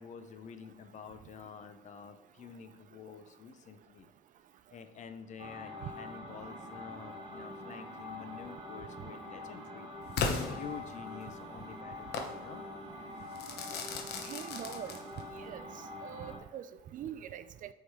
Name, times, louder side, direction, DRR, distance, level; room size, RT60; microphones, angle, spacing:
voice 1, 0.0-4.1 4.7-9.9 10.5-12.6, left 7 dB, 45° left, 9 dB, 0.6 m, -48 dB
sound 1, 5.4-16.4, left 1 dB, 35° right, 1.6 m, -45 dB
Crackle / Fireworks, 10.2-11.3 12.1-12.4 13.4-15.4, left 5 dB, 75° left, 0.9 m, -36 dB
voice 2, 14.2-15.0 15.3-15.6 16.0-17.7, right 10 dB, 50° right, 12 dB, 0.4 m, -43 dB
6.3 x 3.7 x 4.6 m, 0.95 s
cardioid pair, 110°, 17 cm